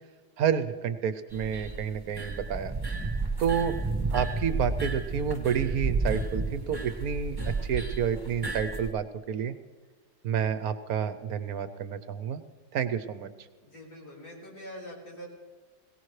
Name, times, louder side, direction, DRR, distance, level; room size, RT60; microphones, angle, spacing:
voice 1, 0.4-2.7 3.4-3.8 4.1-9.5 10.2-12.4 12.7-13.3, right 7 dB, 70° right, 11 dB, 1.1 m, -29 dB
sound 1, 1.3-8.9, right 3 dB, 15° right, 1.3 m, -32 dB
voice 2, 13.6-15.3, equal, 70° left, -4 dB, 5.3 m, -44 dB
22.0 x 17.5 x 3.2 m, 1.5 s
omnidirectional pair, 1.7 m